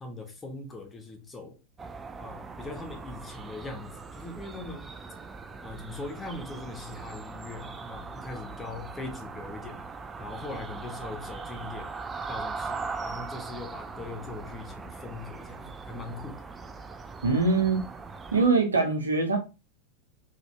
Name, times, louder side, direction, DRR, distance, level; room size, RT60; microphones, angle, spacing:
voice 1, 0.0-1.6 2.2-4.9 5.6-9.8 10.2-11.9 12.3-16.4, left 2 dB, 15° left, 1.0 m, -41 dB
sound 1, 1.8-18.5, right 4 dB, 15° right, 0.4 m, -40 dB
voice 2, 17.2-17.8 18.3-19.4, right 3 dB, 75° right, 1.1 m, -23 dB
4.0 x 3.3 x 3.2 m
figure-of-eight pair, 90°, 0 cm